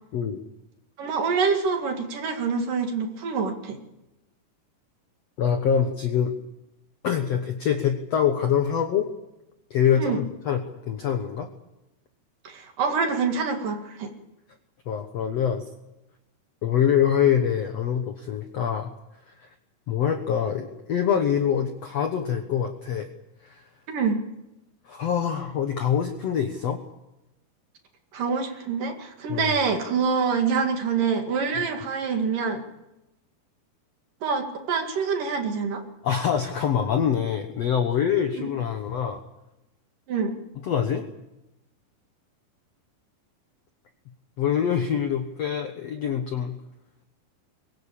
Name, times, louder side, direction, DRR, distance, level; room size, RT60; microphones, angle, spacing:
voice 1, 0.1-0.4 5.4-6.3 7.0-9.1 9.7-11.5 14.9-15.6 16.6-18.9 19.3-19.4 19.9-23.1 23.4-23.6 24.9-26.8 29.3-29.5 36.0-39.2 40.6-41.1 44.4-46.6, left 8 dB, 65° left, 6 dB, 1.6 m, -25 dB
voice 2, 1.0-3.8 10.0-10.2 12.5-14.1 23.9-24.2 28.1-32.6 34.2-35.8 40.1-40.4, right 5 dB, 60° right, 4 dB, 3.7 m, -26 dB
23.0 x 19.5 x 8.6 m, 0.94 s
omnidirectional pair, 4.7 m